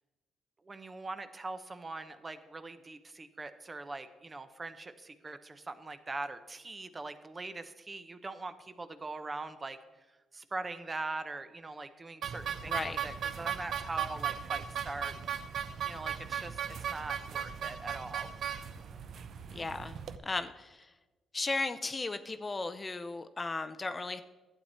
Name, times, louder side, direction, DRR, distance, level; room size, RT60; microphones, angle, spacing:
voice 1, 0.6-9.8 10.3-16.6 16.9-18.3, right 3 dB, 25° right, 10 dB, 0.7 m, -42 dB
sound 1, 12.2-20.2, right 8 dB, 65° right, 0.7 m, -37 dB
voice 2, 12.7-13.0 19.5-20.0 20.2-20.9 21.3-24.2, left 3 dB, 25° left, 10 dB, 0.5 m, -35 dB
12.0 x 8.5 x 4.3 m, 1.2 s
cardioid pair, 90°, 0 cm